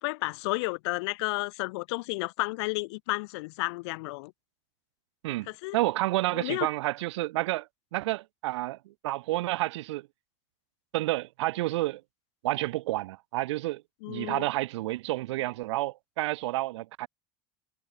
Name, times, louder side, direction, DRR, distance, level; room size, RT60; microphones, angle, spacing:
voice 1, 0.0-4.3 5.5-5.8 6.3-6.7 14.0-14.5, left 24 dB, 75° left, 3.0 m, -32 dB
voice 2, 5.7-10.1 10.9-12.0 12.4-13.8 14.1-17.1, right 18 dB, 90° right, 6.9 m, -30 dB
supercardioid pair, 140°, 14 cm